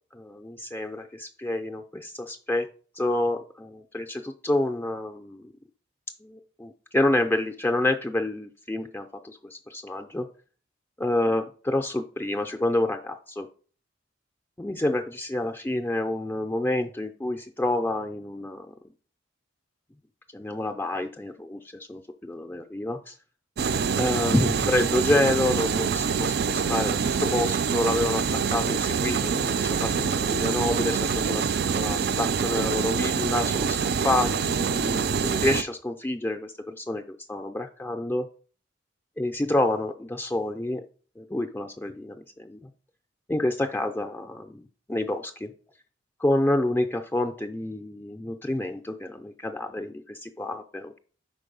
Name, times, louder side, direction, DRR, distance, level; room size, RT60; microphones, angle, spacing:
voice 1, 0.1-2.7 3.0-5.5 6.2-10.3 11.0-13.5 14.6-18.7 20.3-23.1 24.0-31.4 31.7-38.3 39.2-40.8 41.2-42.7 43.3-45.5 46.2-51.0, left 1 dB, 10° left, 4 dB, 0.4 m, -28 dB
sound 1, 23.6-35.6, right 6 dB, 55° right, 0.4 m, -25 dB
5.3 x 4.1 x 5.2 m, 0.40 s
head